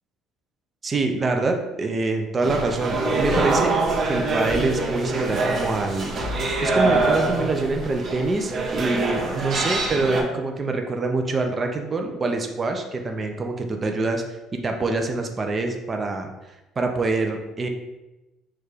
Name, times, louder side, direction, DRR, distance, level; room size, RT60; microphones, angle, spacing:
voice 1, 0.8-6.1 6.6-14.2 14.5-16.3 16.8-17.7, right 3 dB, 20° right, 4 dB, 0.4 m, -25 dB
sound 1, 2.4-10.2, right 3 dB, 40° right, 0.8 m, -24 dB
sound 2, 5.7-7.1, right 2 dB, 90° right, 1.0 m, -34 dB
4.6 x 2.4 x 4.8 m, 1.0 s
cardioid pair, 160°, 0 cm